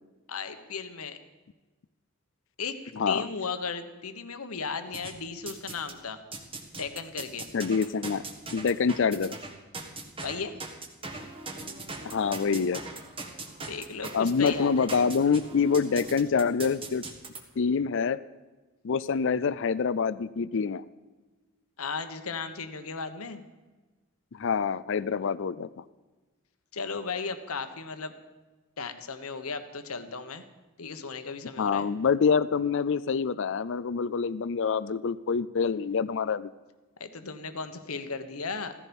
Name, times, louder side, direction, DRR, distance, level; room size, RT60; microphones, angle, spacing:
voice 1, 0.3-1.2 2.6-2.8 3.1-6.2 6.7-7.5 10.2-10.6 13.7-14.9 21.8-23.4 26.7-28.1 28.8-30.4 30.8-31.9 37.0-38.7, left 5 dB, 80° left, 9 dB, 1.3 m, -35 dB
voice 2, 3.0-3.3 7.5-8.2 8.5-9.4 12.0-12.8 14.1-17.0 17.6-18.2 18.8-20.8 24.3-25.7 31.6-36.5, left 5 dB, 60° left, 17 dB, 0.4 m, -26 dB
sound 1, 4.9-6.0 6.3-17.4, right 3 dB, 25° right, 1.6 m, -40 dB
15.5 x 15.0 x 5.4 m, 1.2 s
head